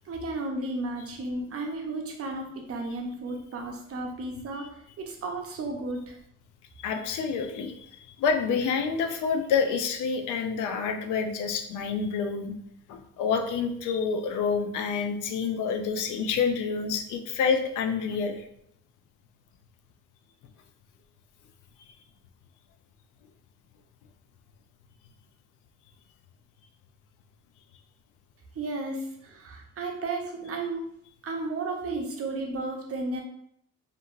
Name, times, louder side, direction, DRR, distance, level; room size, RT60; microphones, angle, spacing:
voice 1, 0.0-6.2 28.5-30.9 31.2-33.2, right 2 dB, 50° right, 1 dB, 0.7 m, -33 dB
voice 2, 6.8-12.5 12.9-18.5, left 5 dB, 80° left, 6 dB, 0.5 m, -28 dB
2.8 x 2.5 x 2.5 m, 0.71 s
cardioid pair, 90°, 30 cm